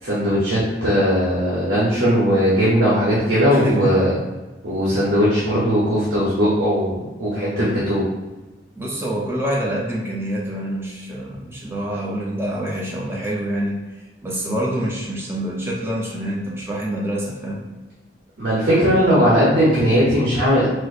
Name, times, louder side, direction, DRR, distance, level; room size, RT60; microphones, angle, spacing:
voice 1, 0.0-4.2 4.6-8.0 18.4-20.7, equal, 85° right, -8 dB, 0.9 m, -18 dB
voice 2, 3.5-3.9 8.8-13.8 14.2-17.6, right 1 dB, 15° right, -4 dB, 0.6 m, -26 dB
4.3 x 2.1 x 2.5 m, 1.2 s
head